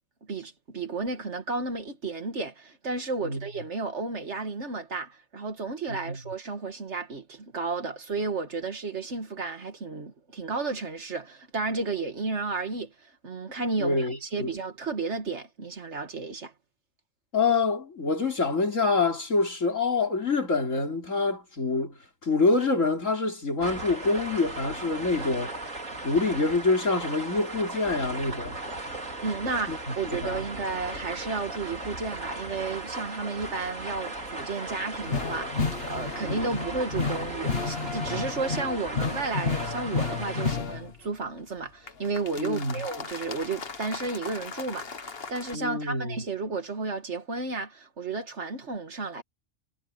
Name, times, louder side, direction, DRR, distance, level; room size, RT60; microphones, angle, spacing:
voice 1, 0.3-16.5 29.2-49.2, right 3 dB, 60° right, 2.0 m, -33 dB
voice 2, 5.9-6.2 13.8-14.5 17.3-21.9 22.2-25.6 26.0-28.6 29.7-30.4 36.2-36.4 42.4-42.8 45.5-46.2, left 3 dB, 75° left, 4.2 m, -26 dB
sound 1, 23.6-40.5, right 2 dB, 80° right, 4.6 m, -37 dB
sound 2, 35.0-41.0 41.9-45.5, left 5 dB, 50° left, 1.7 m, -33 dB
omnidirectional pair, 1.4 m